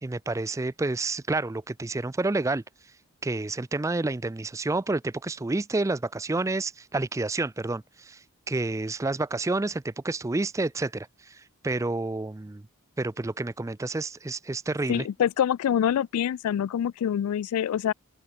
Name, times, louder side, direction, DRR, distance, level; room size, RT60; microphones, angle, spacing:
voice 1, 0.0-2.6 3.2-12.6 13.0-15.1, right 2 dB, 15° right, 0.3 m, -29 dB
voice 2, 14.9-17.9, left 9 dB, 85° left, 0.3 m, -25 dB
open air
head